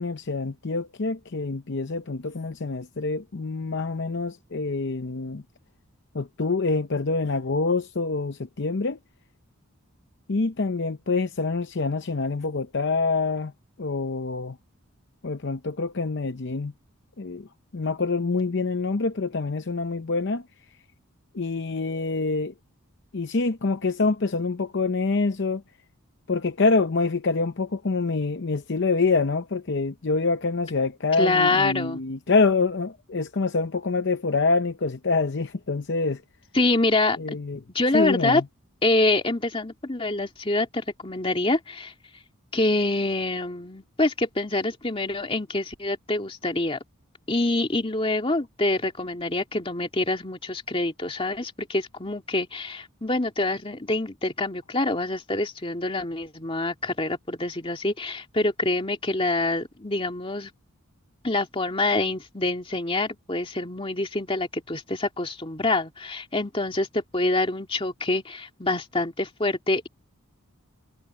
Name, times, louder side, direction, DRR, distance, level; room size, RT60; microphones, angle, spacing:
voice 1, 0.0-5.4 6.1-9.0 10.3-13.5 13.8-14.6 15.2-16.7 17.2-17.5 17.7-20.4 21.3-22.5 23.1-25.6 26.3-36.2 37.2-37.6 37.9-38.4, left 3 dB, 55° left, 0.7 m, -26 dB
voice 2, 31.2-32.0 36.5-37.4 37.7-38.4 38.8-41.9 42.5-46.8 47.3-60.5 61.2-69.9, left 2 dB, 25° left, 2.3 m, -26 dB
head